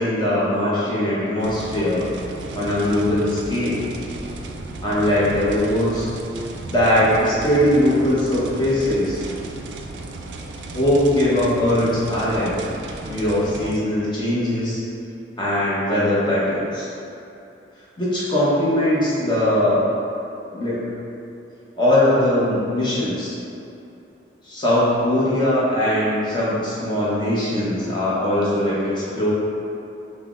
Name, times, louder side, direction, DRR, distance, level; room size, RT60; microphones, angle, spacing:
voice 1, 0.0-2.1 2.5-3.9 4.8-6.1 6.6-9.2 10.7-12.6 13.0-14.8 15.4-16.9 18.0-19.9 20.5-20.9 21.8-23.3 24.4-29.3, left 1 dB, 25° left, -9 dB, 0.8 m, -20 dB
sound 1, 1.4-13.8, right 2 dB, 75° right, 0.3 m, -35 dB
5.5 x 2.0 x 2.4 m, 2.8 s
head